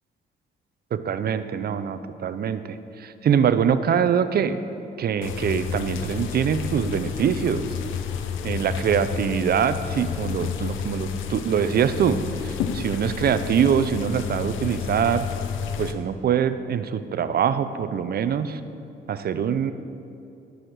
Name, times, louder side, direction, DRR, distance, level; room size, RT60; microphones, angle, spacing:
voice 1, 0.9-4.6 5.0-7.7 8.4-15.3 15.8-18.6 19.1-19.7, right 8 dB, 50° right, 12 dB, 0.6 m, -24 dB
sound 1, 5.2-15.9, left 7 dB, 80° left, 0.7 m, -31 dB
10.5 x 6.4 x 6.5 m, 2.7 s
cardioid pair, 90°, 20 cm